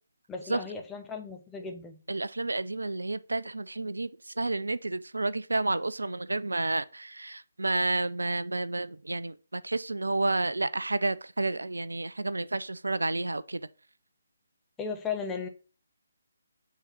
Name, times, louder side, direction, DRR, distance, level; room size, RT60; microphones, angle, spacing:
voice 1, 0.3-2.0 14.8-15.5, left 5 dB, 10° left, 0.8 m, -36 dB
voice 2, 2.1-4.1 4.4-13.6, right 2 dB, 70° right, 0.4 m, -30 dB
5.6 x 3.8 x 5.8 m
figure-of-eight pair, 145°, 0 cm